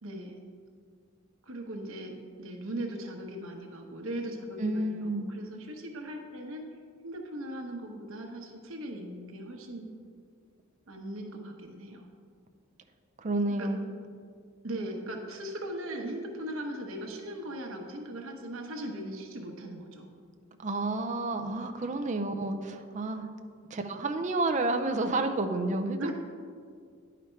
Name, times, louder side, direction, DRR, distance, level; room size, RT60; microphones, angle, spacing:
voice 1, 0.0-0.3 1.5-6.7 7.0-9.9 10.9-12.1 13.6-13.7 14.6-20.1 26.0-26.1, right 1 dB, 80° right, 2 dB, 1.0 m, -39 dB
voice 2, 4.6-5.3 13.2-13.9 20.6-23.3 23.7-26.1, right 2 dB, 35° right, 5 dB, 0.5 m, -30 dB
10.5 x 5.0 x 4.5 m, 2.1 s
head